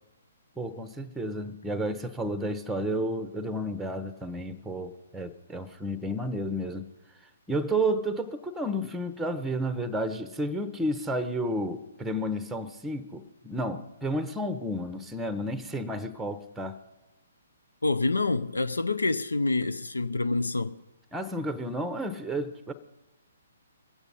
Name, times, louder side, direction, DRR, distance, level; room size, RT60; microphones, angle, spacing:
voice 1, 0.6-6.9 7.5-16.8 21.1-22.7, right 1 dB, 5° right, 0.8 m, -31 dB
voice 2, 17.8-20.8, left 3 dB, 75° left, 0.5 m, -27 dB
22.0 x 8.2 x 5.4 m
figure-of-eight pair, 125°, 0 cm